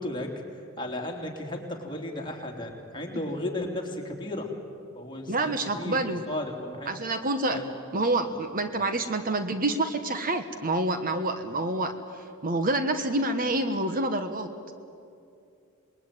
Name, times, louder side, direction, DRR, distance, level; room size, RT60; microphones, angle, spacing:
voice 1, 0.0-4.5 4.9-6.9 7.5-7.6 8.7-8.8, left 1 dB, 20° left, 1 dB, 3.4 m, -35 dB
voice 2, 5.3-6.2 6.9-7.6 7.9-11.9 12.4-14.5, right 2 dB, 40° right, 8 dB, 1.3 m, -27 dB
27.5 x 20.5 x 9.1 m, 2.6 s
head